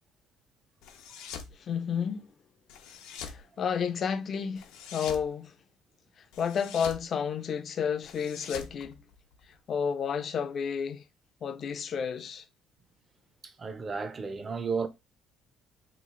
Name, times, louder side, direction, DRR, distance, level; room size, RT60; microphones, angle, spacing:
sound 1, 0.8-1.5 2.7-3.4 4.6-5.3 6.3-7.1 8.0-9.5, left 7 dB, 90° left, 0.6 m, -44 dB
voice 1, 1.5-2.3 3.2-5.5 6.4-8.9 9.7-11.0 11.4-12.4, left 7 dB, 40° left, 0.4 m, -31 dB
voice 2, 13.4-14.9, right 5 dB, 25° right, 0.4 m, -33 dB
3.0 x 2.4 x 3.6 m
cardioid pair, 135°, 0 cm